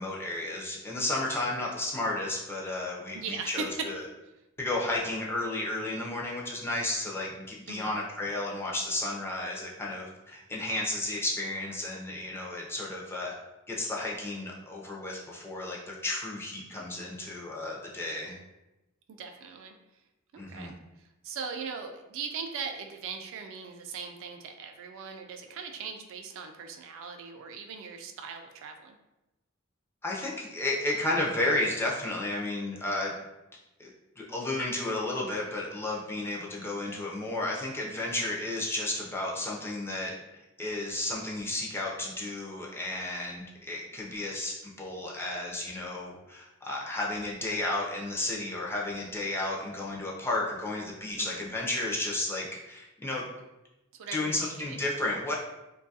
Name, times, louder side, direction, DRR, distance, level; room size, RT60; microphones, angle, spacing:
voice 1, 0.0-4.0 4.6-13.3 13.7-18.4 20.4-20.7 30.0-33.1 33.8-33.9 34.2-40.2 40.6-53.2 54.1-55.4, left 2 dB, 10° left, -3 dB, 0.4 m, -33 dB
voice 2, 3.1-3.9 7.7-7.9 19.1-19.8 20.3-20.7 21.2-29.0 51.2-51.4 54.0-54.8, right 5 dB, 65° right, 4 dB, 0.3 m, -39 dB
2.6 x 2.3 x 2.6 m, 0.96 s
head